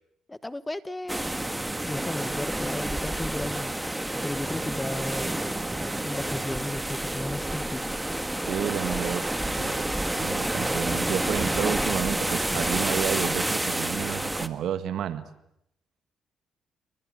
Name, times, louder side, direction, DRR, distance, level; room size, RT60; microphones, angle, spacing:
voice 1, 0.3-1.2 1.9-5.3 6.0-8.0, left 1 dB, 15° left, 14 dB, 1.2 m, -35 dB
sound 1, 1.1-14.5, right 1 dB, 10° right, 1.6 m, -29 dB
sound 2, 4.5-13.0, right 5 dB, 60° right, 4.0 m, -47 dB
voice 2, 8.5-15.2, right 10 dB, 75° right, 11 dB, 1.8 m, -31 dB
28.0 x 24.5 x 7.9 m, 0.80 s
cardioid pair, 90°, 0 cm